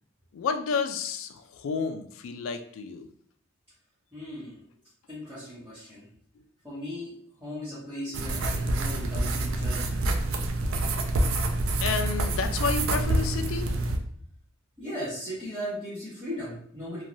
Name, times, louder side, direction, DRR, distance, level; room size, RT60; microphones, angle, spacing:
voice 1, 0.3-3.0 8.1-8.2 11.8-13.7, left 5 dB, 80° left, 8 dB, 0.3 m, -30 dB
voice 2, 4.1-4.5 5.1-6.1 6.6-7.1 7.4-9.9 14.8-17.0, equal, 10° right, -13 dB, 0.9 m, -37 dB
sound 1, 8.1-14.0, right 2 dB, 85° right, 0.4 m, -27 dB
3.0 x 2.2 x 2.5 m, 0.63 s
head